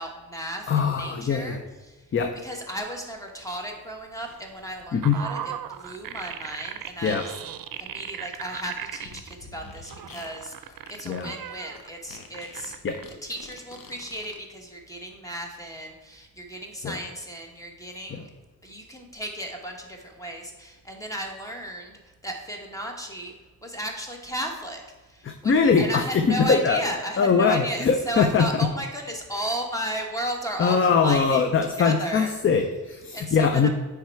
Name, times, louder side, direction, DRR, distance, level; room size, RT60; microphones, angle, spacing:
voice 1, 0.0-2.1 2.4-7.3 7.8-12.7 13.2-18.3 18.6-23.3 23.6-31.5 31.8-32.3 33.1-33.7, right 1 dB, 10° left, 2 dB, 1.2 m, -35 dB
voice 2, 0.7-1.6 2.1-2.3 4.9-5.2 7.0-7.2 11.1-11.3 12.8-13.0 16.8-17.0 18.1-18.2 25.2-26.8 27.2-28.7 30.6-33.7, left 5 dB, 40° left, 5 dB, 0.5 m, -22 dB
sound 1, 4.3-9.3 9.8-11.9 12.3-13.0, right 10 dB, 80° right, 0.5 m, -37 dB
Fart, 8.9-14.4, left 4 dB, 85° left, 1.0 m, -46 dB
9.4 x 3.5 x 4.5 m, 1.2 s
wide cardioid pair, 120°, 34 cm